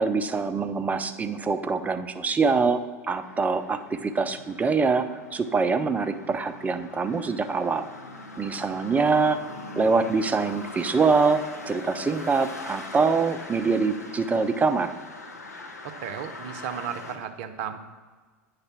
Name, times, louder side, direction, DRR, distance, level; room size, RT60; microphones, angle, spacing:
voice 1, 0.0-2.8 3.1-5.1 5.3-7.9 8.4-9.4 9.8-14.9, right 4 dB, 20° right, 9 dB, 0.5 m, -24 dB
sound 1, 3.2-17.2, left 2 dB, 90° left, 0.7 m, -42 dB
voice 2, 15.8-17.8, right 8 dB, 60° right, 8 dB, 0.6 m, -34 dB
9.0 x 3.3 x 5.8 m, 1.4 s
hypercardioid pair, 85°, 8 cm